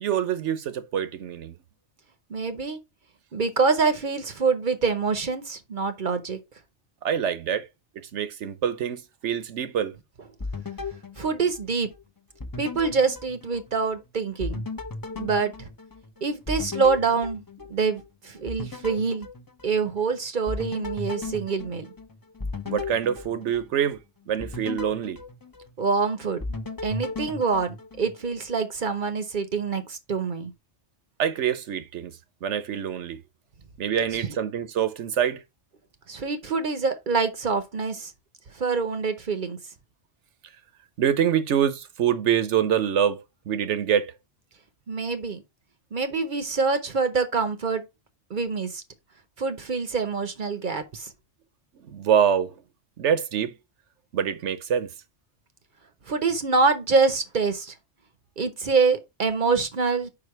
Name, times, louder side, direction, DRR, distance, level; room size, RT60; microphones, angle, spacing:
voice 1, 0.0-1.6 7.0-7.7 8.1-9.9 22.6-24.0 24.3-25.2 31.2-32.1 32.4-33.2 33.8-35.4 41.0-44.1 51.8-52.5 53.0-53.5 54.1-54.9, right 9 dB, 80° right, 1.1 m, -25 dB
voice 2, 2.3-2.8 3.3-6.4 11.2-11.9 12.6-14.6 15.2-15.7 16.2-17.4 17.7-19.3 19.6-21.9 25.8-26.4 26.8-30.5 34.2-34.3 36.1-38.1 38.5-39.6 44.9-45.4 45.9-47.8 48.3-48.8 49.4-51.1 56.1-57.7 58.4-60.1, right 4 dB, 50° right, 0.8 m, -25 dB
sound 1, 10.4-12.0 12.4-14.0 14.4-18.1 18.5-20.1 20.5-23.9 24.4-26.0 26.4-28.4, left 3 dB, 25° left, 0.6 m, -36 dB
5.0 x 4.9 x 4.6 m
omnidirectional pair, 1.2 m